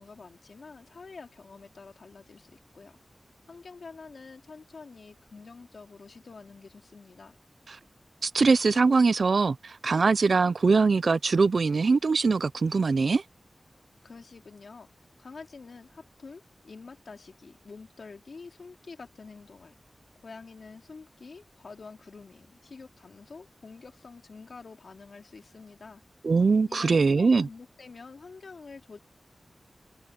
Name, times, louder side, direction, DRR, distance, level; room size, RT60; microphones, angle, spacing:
voice 1, 0.0-3.0 3.5-7.4 14.0-14.9 15.2-19.8 20.2-26.0 26.7-29.0, left 4 dB, 80° left, 3.5 m, -47 dB
voice 2, 8.2-13.2 26.2-27.5, right 4 dB, 70° right, 0.4 m, -22 dB
wide cardioid pair, 100°, 0 cm